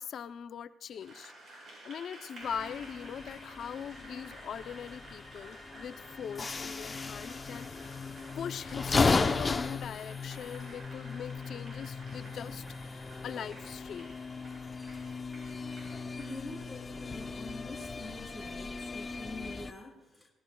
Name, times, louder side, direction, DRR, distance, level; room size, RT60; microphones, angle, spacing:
voice 1, 0.0-14.1, left 8 dB, 65° left, 11 dB, 0.6 m, -41 dB
Applause, 0.9-18.7, right 2 dB, 50° right, 6.3 m, -53 dB
sound 1, 2.4-19.7, left 4 dB, 30° left, 0.7 m, -36 dB
voice 2, 16.1-20.3, left 2 dB, 10° right, -1 dB, 4.6 m, -45 dB
28.5 x 18.0 x 2.3 m, 0.99 s
cardioid pair, 90°, 0 cm